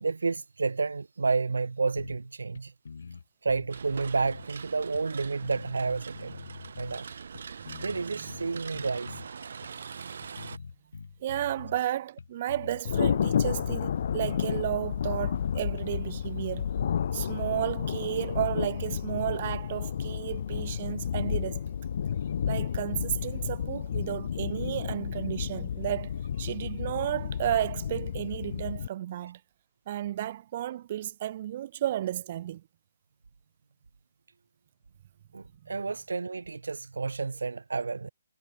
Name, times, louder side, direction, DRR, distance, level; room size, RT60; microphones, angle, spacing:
voice 1, 0.0-2.7 3.4-6.3 6.8-7.1 7.8-9.2 35.3-38.1, right 4 dB, 75° right, 0.6 m, -30 dB
sound 1, 2.0-2.3 2.5-2.6 2.8-4.5 4.9-7.0 7.3-9.3 9.6-9.8 10.2-11.8 12.2-12.8 13.1-14.2 14.5-16.6 17.0-17.1 17.3-17.6 17.9-21.2, left 5 dB, 70° left, 3.3 m, -45 dB
sound 2, 3.7-10.6, right 6 dB, 60° right, 1.2 m, -43 dB
voice 2, 7.6-8.3 11.2-16.7 17.1-21.6 22.5-29.4 29.9-32.6 35.6-35.7, right 12 dB, 40° right, 1.8 m, -33 dB
Thunder, 12.8-28.9, left 8 dB, 50° left, 0.8 m, -31 dB
hypercardioid pair, 150°, 0 cm